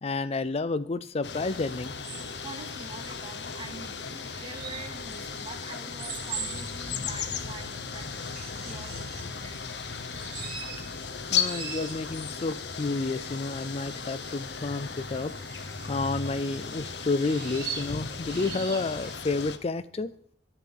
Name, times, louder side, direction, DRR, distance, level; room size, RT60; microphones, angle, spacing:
voice 1, 0.0-1.9 11.3-15.3 15.9-20.1, left 3 dB, 35° left, 14 dB, 0.4 m, -30 dB
sound 1, 1.2-19.6, left 6 dB, 75° left, 1.0 m, -36 dB
sound 2, 1.5-19.1, right 6 dB, 60° right, 2.8 m, -44 dB
voice 2, 2.4-9.6, right 2 dB, 30° right, 7 dB, 1.5 m, -45 dB
sound 3, 6.3-11.4, left 2 dB, 55° left, 1.1 m, -44 dB
11.5 x 7.0 x 9.1 m, 0.69 s
head